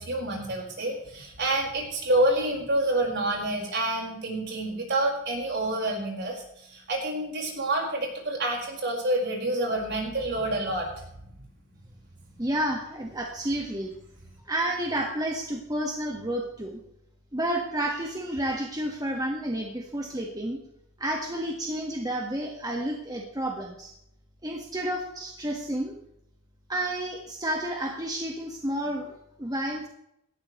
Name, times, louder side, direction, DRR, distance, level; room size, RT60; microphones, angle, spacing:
voice 1, 0.0-10.9, right 1 dB, 55° right, 0 dB, 4.9 m, -28 dB
voice 2, 12.4-13.9 14.5-16.8 17.3-20.6 21.0-23.9 24.4-26.0 26.7-29.1 29.4-29.9, right 1 dB, 20° right, 1 dB, 1.6 m, -30 dB
18.0 x 14.0 x 3.2 m, 0.76 s
head